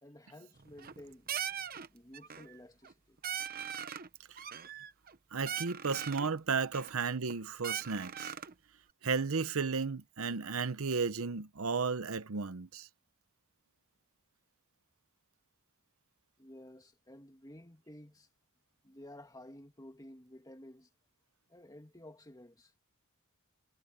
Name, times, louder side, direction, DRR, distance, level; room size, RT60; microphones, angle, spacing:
voice 1, 0.0-1.3 1.9-3.2 16.4-18.3 18.8-20.9 21.5-22.7, left 1 dB, 15° left, 2.2 m, -53 dB
sound 1, 0.6-1.0 1.3-1.9 2.1-2.5 2.8-2.9 3.2-4.1 4.4-5.2 5.5-6.3 6.7-7.3 7.6-8.5, right 8 dB, 40° right, 0.9 m, -40 dB
voice 2, 5.3-8.3 9.0-12.9, right 5 dB, 70° right, 0.8 m, -34 dB
head